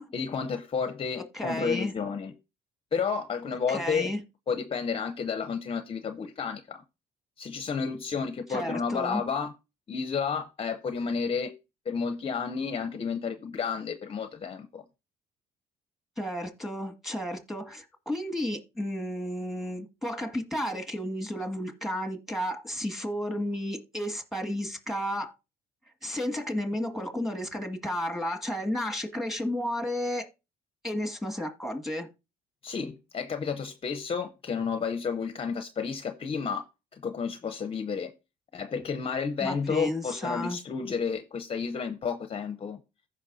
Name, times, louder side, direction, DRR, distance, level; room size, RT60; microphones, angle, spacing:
voice 1, 0.1-2.3 2.9-4.1 4.5-6.8 7.4-9.5 9.9-11.5 11.9-14.8 32.6-36.6 36.9-38.1 38.5-42.8, left 6 dB, 35° left, 0.7 m, -31 dB
voice 2, 1.3-1.9 3.7-4.2 8.5-9.2 16.2-25.3 26.0-30.3 30.8-32.1 39.4-40.6, equal, ahead, 1.9 m, -32 dB
15.0 x 5.5 x 2.7 m
cardioid pair, 110°, 17 cm